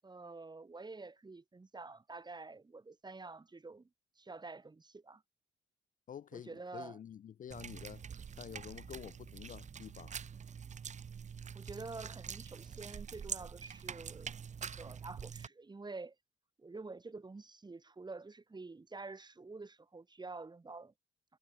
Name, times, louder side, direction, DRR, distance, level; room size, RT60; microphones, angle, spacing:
voice 1, 0.0-3.9 4.2-5.2 6.3-7.0 11.5-16.2 16.6-20.9, right 3 dB, 20° right, 1.9 m, -48 dB
voice 2, 6.1-8.0 8.3-10.1, left 9 dB, 40° left, 0.5 m, -49 dB
sound 1, 7.5-15.5, right 7 dB, 35° right, 0.8 m, -45 dB
cardioid pair, 90°, 20 cm